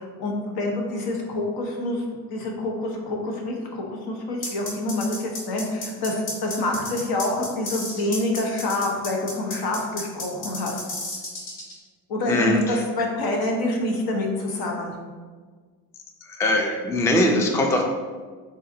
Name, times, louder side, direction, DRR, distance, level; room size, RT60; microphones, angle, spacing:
voice 1, 0.0-2.0 2.3-10.8 12.1-15.0, left 2 dB, 65° left, 1 dB, 1.0 m, -27 dB
sound 1, 4.4-11.7, left 2 dB, 85° left, 1.2 m, -32 dB
voice 2, 12.3-12.8 16.2-17.8, left 1 dB, 10° left, 2 dB, 0.3 m, -21 dB
4.1 x 3.8 x 2.6 m, 1.5 s
cardioid pair, 90°, 40 cm